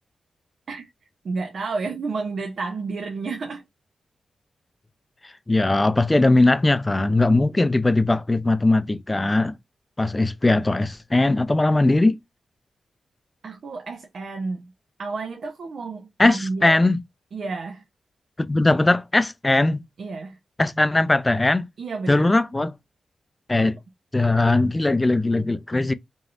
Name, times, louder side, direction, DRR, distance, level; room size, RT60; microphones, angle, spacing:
voice 1, 1.2-3.6 13.4-14.7 15.0-16.8 17.3-17.8 20.0-20.4 21.8-22.3, right 4 dB, 70° right, 0.6 m, -31 dB
voice 2, 5.5-9.6 10.0-12.2 16.2-17.0 18.4-19.8 20.6-21.7 22.1-22.7 23.5-23.8 24.1-25.9, left 2 dB, 20° left, 0.4 m, -19 dB
3.1 x 2.7 x 2.4 m
cardioid pair, 70°, 0 cm